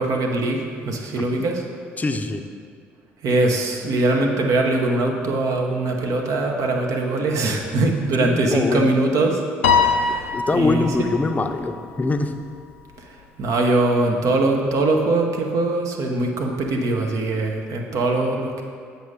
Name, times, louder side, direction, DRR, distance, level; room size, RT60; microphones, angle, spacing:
voice 1, 0.0-1.6 3.2-9.4 9.8-11.1 13.0-18.6, right 2 dB, 60° right, 1 dB, 1.0 m, -22 dB
voice 2, 2.0-2.4 8.2-8.9 10.3-12.3, left 3 dB, 25° left, 6 dB, 0.6 m, -23 dB
Piano, 9.6-12.1, left 5 dB, 85° left, 0.5 m, -22 dB
7.7 x 5.5 x 3.7 m, 2.1 s
hypercardioid pair, 55°, 6 cm